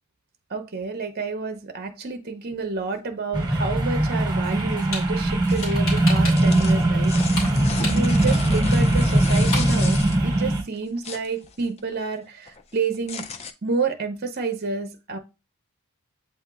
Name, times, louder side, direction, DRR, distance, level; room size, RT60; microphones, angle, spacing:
voice 1, 0.5-7.1 7.8-13.2 13.6-15.2, right 4 dB, 45° right, 7 dB, 0.6 m, -29 dB
sound 1, 3.3-10.6, right 1 dB, 20° right, 0.9 m, -20 dB
sound 2, 4.6-5.1 5.4-6.6 6.8-8.4 8.7-8.8 9.0-9.1 9.3-9.8, left 2 dB, 65° left, 2.5 m, -32 dB
sound 3, 5.5-5.9 6.2-10.4 10.7-12.0 12.3-13.5, left 5 dB, 30° left, 0.3 m, -35 dB
8.2 x 2.8 x 2.3 m, 0.28 s
head